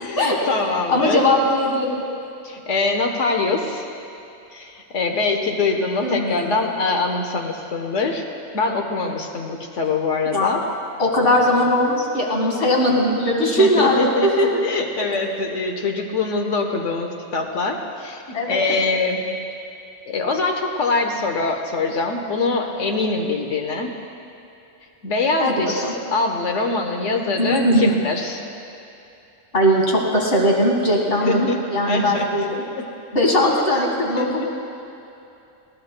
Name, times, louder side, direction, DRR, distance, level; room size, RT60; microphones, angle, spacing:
voice 1, 0.0-1.5 2.4-3.8 4.5-8.2 8.5-10.6 13.6-19.3 20.1-23.9 25.0-28.4 31.2-31.6 31.8-32.3 32.8-32.9 33.7-34.5, left 3 dB, 75° left, 3 dB, 1.4 m, -24 dB
voice 2, 0.9-2.0 6.0-6.5 10.3-10.5 11.0-14.6 18.3-18.6 25.4-25.9 27.4-27.9 29.5-32.6 33.1-34.5, left 1 dB, 50° left, -1 dB, 2.1 m, -19 dB
20.0 x 16.5 x 2.2 m, 2.7 s
omnidirectional pair, 1.3 m